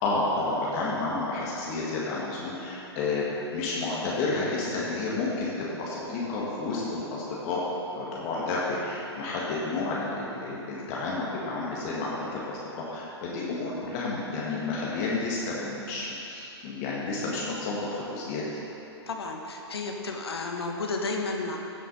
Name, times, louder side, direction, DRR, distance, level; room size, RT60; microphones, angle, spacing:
voice 1, 0.0-7.6 7.9-18.6, left 3 dB, 35° left, -5 dB, 1.8 m, -31 dB
voice 2, 19.1-21.6, left 3 dB, 65° left, 2 dB, 1.4 m, -32 dB
15.5 x 6.8 x 4.1 m, 3.0 s
figure-of-eight pair, 115°, 14 cm